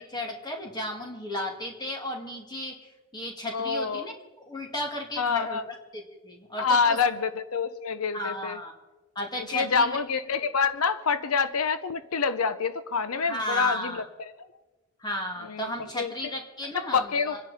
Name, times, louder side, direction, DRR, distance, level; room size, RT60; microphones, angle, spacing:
voice 1, 0.0-2.8 3.1-4.1 4.5-7.0 8.1-8.7 9.2-10.0 13.2-14.0 15.0-17.4, left 1 dB, 20° left, 1 dB, 2.1 m, -34 dB
voice 2, 3.5-4.1 5.2-5.6 6.6-8.6 9.4-14.3 15.5-16.1 16.7-17.4, left 5 dB, 80° left, 12 dB, 0.7 m, -27 dB
27.0 x 10.5 x 4.2 m, 1.2 s
head